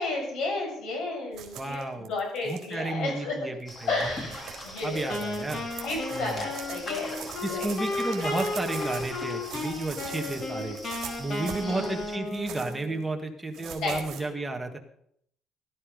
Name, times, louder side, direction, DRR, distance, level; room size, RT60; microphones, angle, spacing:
voice 1, 0.0-3.3 3.9-5.2 5.8-7.7 10.0-10.8 11.6-11.9 13.8-14.2, left 3 dB, 60° left, 1 dB, 7.1 m, -33 dB
sound 1, 1.3-2.7 3.6-3.7 4.1-9.1 9.4-11.8 12.3-12.8 13.5-14.2, right 9 dB, 55° right, 3.9 m, -43 dB
voice 2, 1.5-2.1 2.4-3.9 4.8-5.7 6.1-6.4 7.4-10.8 11.2-14.8, right 2 dB, 5° right, 3 dB, 1.7 m, -32 dB
sound 2, 3.7-12.2, equal, 15° left, 2.4 m, -42 dB
Wind instrument woodwind instrument, 5.1-13.0, left 2 dB, 35° left, 2.9 m, -34 dB
17.5 x 12.5 x 5.3 m, 0.69 s
cardioid pair, 170°, 0 cm